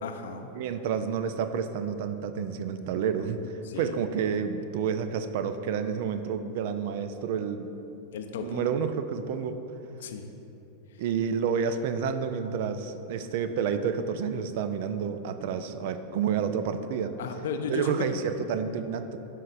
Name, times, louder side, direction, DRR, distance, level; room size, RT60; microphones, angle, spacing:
voice 1, 0.0-0.5 3.6-3.9 8.1-8.8 10.0-10.3 17.2-18.1, left 5 dB, 60° left, 5 dB, 0.5 m, -35 dB
voice 2, 0.5-3.4 3.8-7.7 8.4-9.6 11.0-17.1 17.7-19.2, right 7 dB, 50° right, 9 dB, 0.4 m, -29 dB
12.5 x 4.9 x 2.5 m, 3.0 s
figure-of-eight pair, 90°, 0 cm